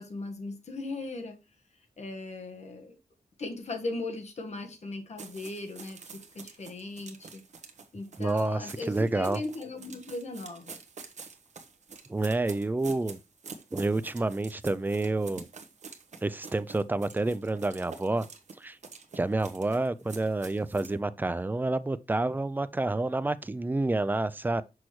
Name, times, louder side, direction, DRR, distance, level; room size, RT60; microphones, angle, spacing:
voice 1, 0.0-1.4 2.0-3.0 3.4-7.4 7.9-10.8, left 2 dB, 50° left, 1.3 m, -38 dB
sound 1, 5.2-21.0, right 5 dB, 50° right, 1.0 m, -47 dB
voice 2, 8.2-9.4 12.1-13.2 13.7-15.5 16.2-18.3 18.6-18.8 19.1-24.6, right 2 dB, 15° right, 0.3 m, -29 dB
6.2 x 5.9 x 3.1 m
wide cardioid pair, 155°, 15 cm